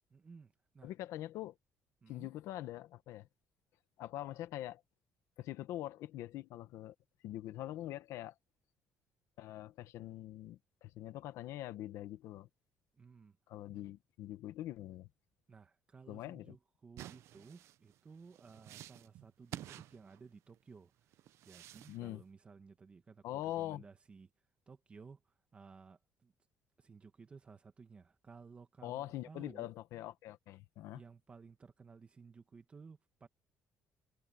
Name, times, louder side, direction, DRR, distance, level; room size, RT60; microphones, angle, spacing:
voice 1, 0.1-0.9 2.0-2.3 12.9-13.4 13.7-13.9 15.5-24.3 24.7-26.3 26.8-29.7 30.9-33.3, right 5 dB, 20° right, 1.3 m, -57 dB
voice 2, 0.8-1.5 2.1-3.3 4.0-4.8 5.4-6.9 7.2-8.3 9.4-12.5 13.5-15.1 16.1-16.5 21.9-22.2 23.2-23.8 28.8-31.0, left 14 dB, 75° left, 1.3 m, -43 dB
sound 1, 17.0-20.6 21.1-22.0, right 13 dB, 60° right, 0.6 m, -51 dB
cardioid pair, 170°, 5 cm